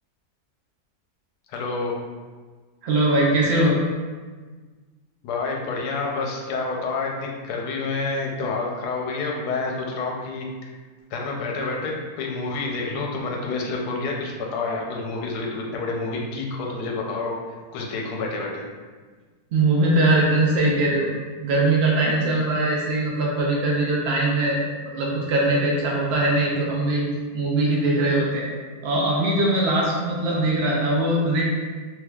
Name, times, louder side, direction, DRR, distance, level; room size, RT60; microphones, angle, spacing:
voice 1, 1.5-1.9 5.2-10.7 11.1-17.4 17.7-18.6 30.3-30.4, left 3 dB, 85° left, 0 dB, 1.1 m, -28 dB
voice 2, 2.8-3.8 19.5-21.1 21.4-24.6 24.9-27.1 27.3-28.5 28.8-31.4, right 2 dB, 85° right, -3 dB, 0.5 m, -21 dB
3.4 x 3.0 x 2.3 m, 1.4 s
omnidirectional pair, 1.6 m